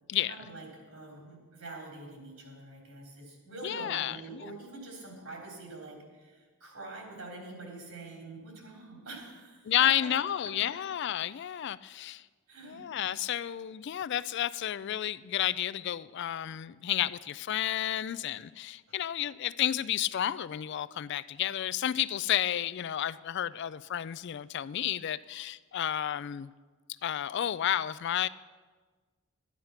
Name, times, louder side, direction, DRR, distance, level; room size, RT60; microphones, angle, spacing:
voice 1, 0.3-10.1 10.4-10.7 12.5-12.9 18.9-19.0, right 2 dB, 75° right, -1 dB, 3.7 m, -45 dB
voice 2, 3.6-4.4 9.7-12.2 12.6-26.5 27.0-28.3, left 11 dB, 50° left, 16 dB, 0.3 m, -31 dB
12.5 x 10.5 x 5.7 m, 1.4 s
head